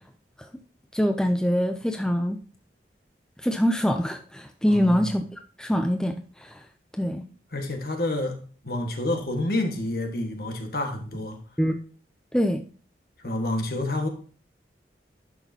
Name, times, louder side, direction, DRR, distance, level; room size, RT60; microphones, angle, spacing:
voice 1, 0.9-2.4 3.4-6.6 7.0-7.2 11.6-11.8 12.3-12.6, equal, 5° left, 6 dB, 0.4 m, -24 dB
voice 2, 4.7-5.1 7.5-8.4 8.6-11.4 13.2-14.1, left 1 dB, 55° left, 4 dB, 1.5 m, -28 dB
11.0 x 6.1 x 2.8 m, 0.41 s
head